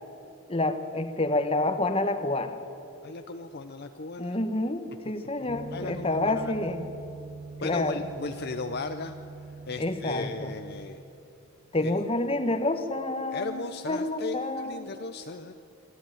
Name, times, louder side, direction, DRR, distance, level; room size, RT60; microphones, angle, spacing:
voice 1, 0.5-2.6 4.2-6.9 7.6-7.9 9.8-10.5 11.7-14.9, left 2 dB, 25° left, 9 dB, 1.1 m, -28 dB
voice 2, 3.0-4.4 5.6-6.7 7.6-9.2 9.7-11.0 11.8-11.9 13.3-15.5, left 3 dB, 45° left, 8 dB, 0.6 m, -36 dB
sound 1, 5.5-10.9, right 4 dB, 60° right, 1.1 m, -43 dB
25.0 x 12.5 x 9.2 m, 2.8 s
head